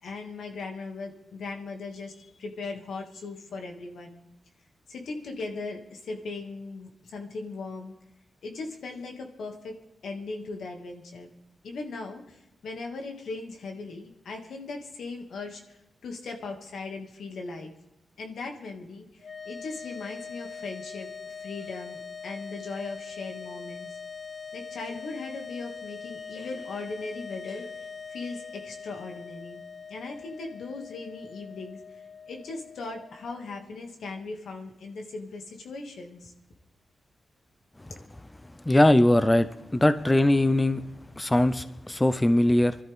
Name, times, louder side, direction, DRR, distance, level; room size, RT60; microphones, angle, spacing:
voice 1, 0.0-4.2 4.9-7.9 8.4-9.7 10.0-11.3 11.6-17.7 18.2-23.9 24.5-29.6 29.9-31.8 32.3-36.3, left 3 dB, 85° left, 2 dB, 2.3 m, -38 dB
sound 1, 19.2-33.6, left 5 dB, 60° left, 6.6 m, -42 dB
voice 2, 38.7-39.5 39.7-40.8 41.2-42.8, left 1 dB, 15° left, 12 dB, 0.6 m, -21 dB
25.0 x 13.0 x 3.7 m, 0.90 s
wide cardioid pair, 130°, 0 cm